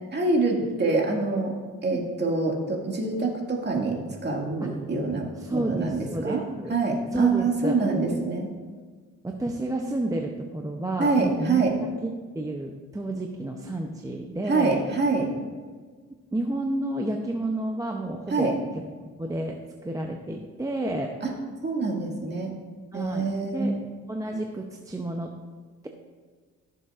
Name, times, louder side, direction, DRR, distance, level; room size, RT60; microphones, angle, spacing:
voice 1, 0.1-1.5 1.8-6.4 6.7-8.5 11.0-11.7 14.4-15.3 18.3-18.5 21.2-21.3 21.6-22.5 22.9-23.8, right 3 dB, 35° right, 0 dB, 2.1 m, -25 dB
voice 2, 5.4-6.8 7.1-8.2 9.2-11.6 12.0-14.8 16.3-18.5 19.2-21.2 22.9-23.8 24.1-25.3, right 1 dB, 10° right, 2 dB, 0.7 m, -31 dB
15.0 x 6.9 x 2.5 m, 1.5 s
cardioid pair, 90°, 30 cm